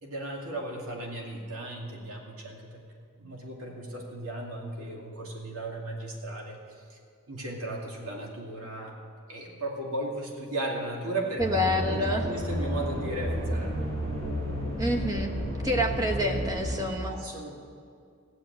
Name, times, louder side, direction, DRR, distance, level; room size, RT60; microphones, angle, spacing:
voice 1, 0.0-2.8 3.2-6.6 7.3-9.0 9.3-11.4 11.8-13.9 17.1-17.6, right 1 dB, 70° right, -1 dB, 2.4 m, -36 dB
voice 2, 11.4-12.3 14.8-15.3 15.6-17.2, left 1 dB, 15° right, 1 dB, 1.2 m, -27 dB
sound 1, 11.4-16.9, equal, 45° right, 2.8 m, -31 dB
16.0 x 7.5 x 8.9 m, 2.2 s
head